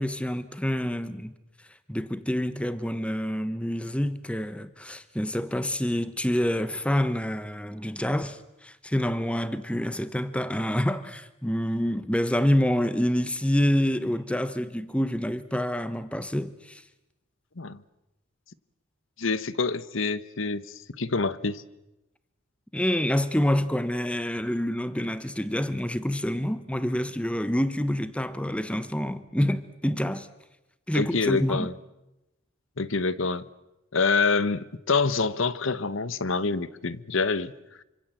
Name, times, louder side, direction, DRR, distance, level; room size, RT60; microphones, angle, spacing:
voice 1, 0.0-1.3 1.9-16.8 22.7-30.3 30.9-31.7, equal, 5° left, 1.0 m, -27 dB
voice 2, 19.2-21.6 30.9-31.7 32.8-33.4 33.9-37.5, left 4 dB, 70° left, 1.1 m, -26 dB
27.0 x 25.5 x 7.8 m
head